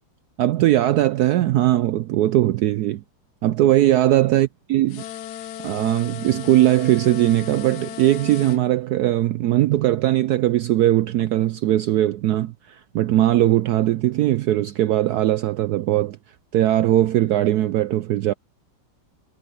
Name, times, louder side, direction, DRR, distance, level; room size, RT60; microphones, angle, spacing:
voice 1, 0.4-3.0 3.4-5.0 5.6-16.2 16.5-18.3, right 14 dB, 75° right, 0.9 m, -19 dB
sound 1, 4.9-8.6, left 10 dB, 65° left, 1.1 m, -36 dB
omnidirectional pair, 2.1 m